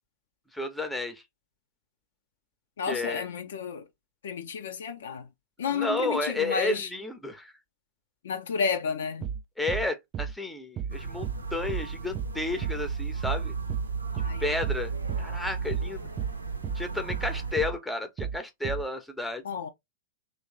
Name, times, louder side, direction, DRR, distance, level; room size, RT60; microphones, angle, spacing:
voice 1, 0.5-1.2 2.9-3.3 5.7-7.5 9.6-13.5 14.4-14.9 15.2-16.0 16.7-19.4, left 2 dB, 5° left, 0.7 m, -32 dB
voice 2, 2.8-3.8 4.2-5.3 5.6-6.9 8.2-9.3 14.2-14.4 19.4-19.7, left 6 dB, 65° left, 0.6 m, -31 dB
sound 1, 9.2-9.4 9.7-9.9 10.1-10.3 10.8-11.0 11.2-11.4 11.7-11.9 12.1-12.3 12.6-12.8 13.2-13.4 13.7-13.9 14.2-14.4 14.6-14.8 15.1-15.3 15.7-15.9 16.2-16.4 16.6-16.8 17.1-17.3 17.6-17.8 18.2-18.4 18.6-18.8, right 8 dB, 30° right, 0.4 m, -33 dB
sound 2, 10.9-17.6, right 5 dB, 85° right, 0.7 m, -34 dB
3.1 x 2.6 x 3.0 m
figure-of-eight pair, 100°, 0 cm